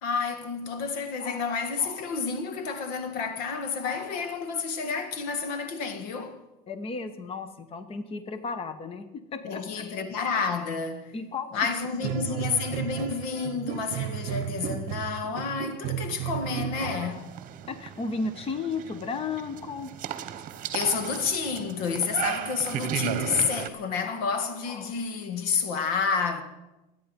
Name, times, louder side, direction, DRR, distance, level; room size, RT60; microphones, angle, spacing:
voice 1, 0.0-6.4 9.4-11.2 11.5-17.4 20.7-26.4, left 5 dB, 75° left, 1.8 m, -30 dB
voice 2, 6.7-9.8 11.1-11.5 12.0-12.4 17.7-19.9, left 4 dB, 30° left, 1.0 m, -34 dB
sound 1, 12.0-17.2, right 12 dB, 65° right, 0.8 m, -34 dB
sound 2, 17.1-23.7, right 11 dB, 45° right, 1.1 m, -35 dB
23.5 x 9.4 x 5.3 m
supercardioid pair, 115°, 20 cm